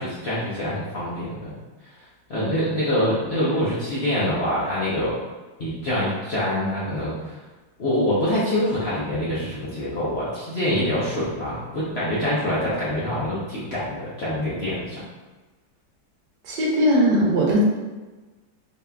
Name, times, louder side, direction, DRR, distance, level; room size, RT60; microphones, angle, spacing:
voice 1, 0.0-1.6 2.0-5.1 5.6-7.4 7.8-15.0, left 1 dB, 60° left, -9 dB, 0.6 m, -25 dB
voice 2, 16.4-17.6, equal, 65° right, -3 dB, 1.4 m, -19 dB
4.1 x 3.4 x 2.3 m, 1.2 s
omnidirectional pair, 2.1 m